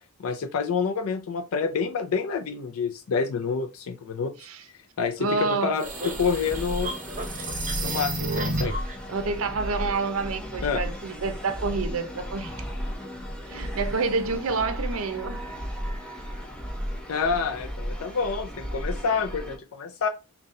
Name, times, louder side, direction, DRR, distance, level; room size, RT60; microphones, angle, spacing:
voice 1, 0.2-4.3 5.0-6.9 7.8-8.8 10.6-10.8 17.1-20.1, left 5 dB, 70° left, 0.4 m, -28 dB
voice 2, 5.2-5.8 9.1-12.5 13.5-15.4, right 4 dB, 70° right, 0.6 m, -28 dB
sound 1, 5.4-8.9, right 2 dB, 35° right, 0.9 m, -31 dB
sound 2, 5.8-19.6, equal, 5° left, 0.6 m, -35 dB
4.0 x 2.3 x 3.7 m
head